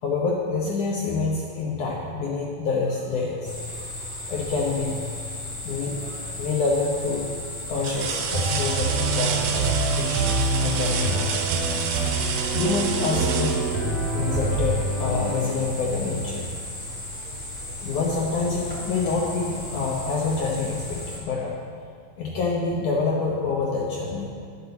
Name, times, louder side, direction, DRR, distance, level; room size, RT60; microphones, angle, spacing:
voice 1, 0.0-3.5 4.1-5.0 5.6-6.0 6.4-7.3 7.7-11.3 12.5-13.6 14.1-16.5 17.8-21.6 22.2-24.3, left 4 dB, 70° left, -3 dB, 2.0 m, -27 dB
sound 1, 3.4-21.2, left 1 dB, 35° left, 3.8 m, -35 dB
sound 2, 6.0-6.5 7.1-7.2 7.8-14.5 16.3-16.4 16.9-17.9 19.2-19.3, right 7 dB, 80° right, 2.9 m, -31 dB
sound 3, 8.3-15.5, right 2 dB, 65° right, 3.2 m, -26 dB
11.0 x 8.3 x 7.0 m, 2.2 s
omnidirectional pair, 4.7 m